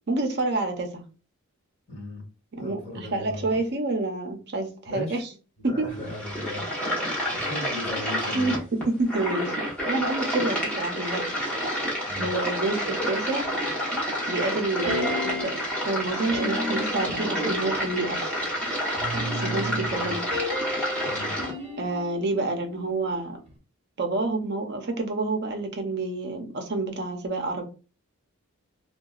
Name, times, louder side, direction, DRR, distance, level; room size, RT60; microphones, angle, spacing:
voice 1, 0.1-1.0 2.5-5.3 5.6-5.9 8.3-9.6 9.9-11.2 11.6-11.7 12.2-13.5 14.3-15.6 15.8-18.4 19.4-20.3 21.8-23.4 24.0-27.6, right 2 dB, 50° right, 4 dB, 0.6 m, -28 dB
voice 2, 1.9-2.2 2.6-3.5 4.9-5.2 5.7-6.7 7.2-8.6 12.1-12.4 19.9-20.1 21.0-21.3, left 2 dB, 30° left, -3 dB, 1.7 m, -37 dB
sound 1, 5.9-21.5, equal, 5° left, 1.0 m, -29 dB
sound 2, 14.9-15.7 16.3-17.9 19.0-23.2 23.5-23.6, left 1 dB, 30° right, 0.9 m, -33 dB
3.7 x 2.3 x 2.3 m, 0.34 s
head